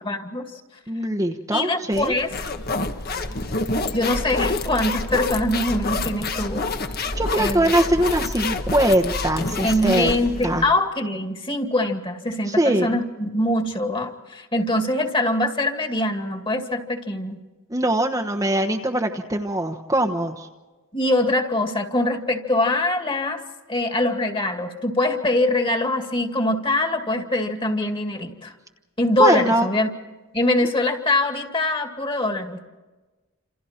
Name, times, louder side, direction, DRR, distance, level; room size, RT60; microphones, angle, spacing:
voice 1, 0.0-0.4 1.5-2.3 3.9-6.7 7.4-7.7 9.6-17.4 20.9-23.4 23.7-28.5 29.0-29.9 30.3-32.6, left 1 dB, 25° left, 5 dB, 2.2 m, -23 dB
voice 2, 0.9-2.1 7.2-10.1 10.4-10.7 12.5-13.0 17.7-20.5 29.2-29.7, right 1 dB, 15° right, 3 dB, 1.1 m, -22 dB
sound 1, 1.9-10.7, left 3 dB, 45° left, 1.4 m, -28 dB
28.0 x 27.5 x 4.4 m, 1.2 s
head